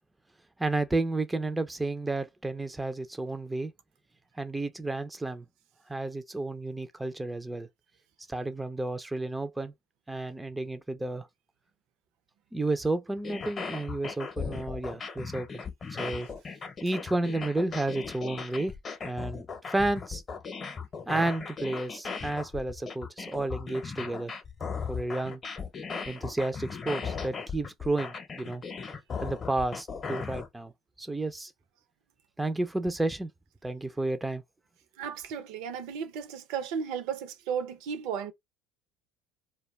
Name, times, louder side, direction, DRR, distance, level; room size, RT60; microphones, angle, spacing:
voice 1, 0.6-3.7 4.4-5.4 5.9-7.7 8.3-9.7 10.1-11.3 12.5-15.5 16.0-16.3 16.8-18.7 19.0-20.2 21.1-24.3 24.9-25.4 26.1-28.6 29.2-30.7 31.0-31.5 32.4-33.3 33.6-34.4, right 2 dB, 10° right, 0.4 m, -31 dB
sound 1, 13.2-30.5, left 5 dB, 35° left, 0.7 m, -37 dB
voice 2, 35.0-38.3, right 7 dB, 70° right, 0.5 m, -34 dB
2.2 x 2.2 x 3.1 m
hypercardioid pair, 80°, 0 cm